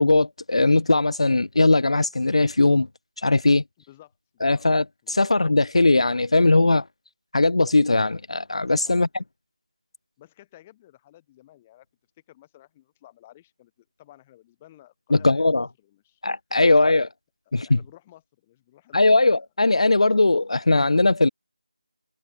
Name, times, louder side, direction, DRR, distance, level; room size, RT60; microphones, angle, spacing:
voice 1, 0.0-2.9 3.2-3.6 4.4-6.8 7.3-9.1 15.1-15.7 16.2-17.1 17.5-17.8 18.9-21.3, left 2 dB, 65° left, 0.4 m, -19 dB
voice 2, 3.9-4.6 5.0-5.3 8.8-9.2 10.2-11.9 12.3-16.2 16.6-16.9 17.6-19.4 20.1-20.2, left 14 dB, 10° left, 2.7 m, -53 dB
figure-of-eight pair, 170°, 3 cm